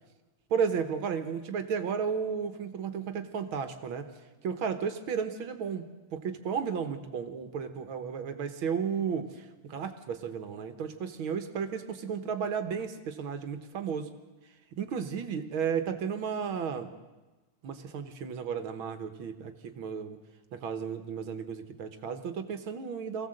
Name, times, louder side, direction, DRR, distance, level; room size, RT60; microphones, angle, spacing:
voice 1, 0.5-4.1 4.4-5.9 6.1-14.1 14.8-16.9 17.6-20.2 20.5-23.3, right 6 dB, 70° right, 8 dB, 2.0 m, -33 dB
23.5 x 16.0 x 7.8 m, 1.2 s
omnidirectional pair, 2.4 m